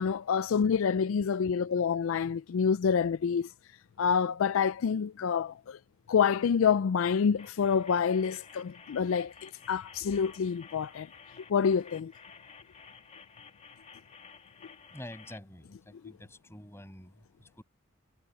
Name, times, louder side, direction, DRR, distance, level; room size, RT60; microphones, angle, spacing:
voice 1, 0.0-3.5 4.0-5.8 6.1-11.1 11.5-12.1, left 6 dB, 70° left, 0.4 m, -27 dB
sound 1, 7.4-15.4, left 6 dB, 35° left, 2.7 m, -53 dB
voice 2, 14.9-17.6, left 1 dB, 15° left, 6.8 m, -48 dB
head